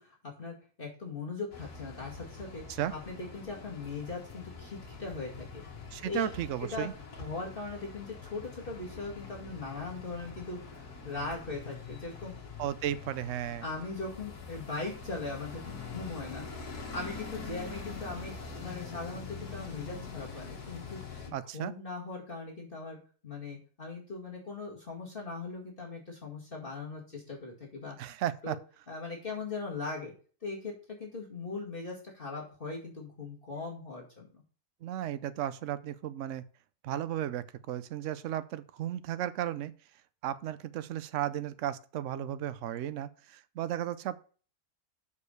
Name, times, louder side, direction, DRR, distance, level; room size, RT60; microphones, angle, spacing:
voice 1, 0.0-2.6 2.9-5.6 6.0-6.3 6.6-6.9 7.2-12.3 13.6-16.5 16.9-21.0 21.3-23.0 23.2-28.0 28.4-28.6 28.9-30.1 30.4-34.4, left 3 dB, 35° left, -2 dB, 2.2 m, -40 dB
sound 1, 1.5-21.3, left 4 dB, 75° left, 2.0 m, -44 dB
voice 2, 5.9-6.9 12.6-13.7 21.3-21.7 28.0-28.6 34.8-36.4 36.8-39.7 40.2-44.2, right 11 dB, 65° right, 14 dB, 0.9 m, -34 dB
6.5 x 5.4 x 6.5 m, 0.40 s
omnidirectional pair, 1.6 m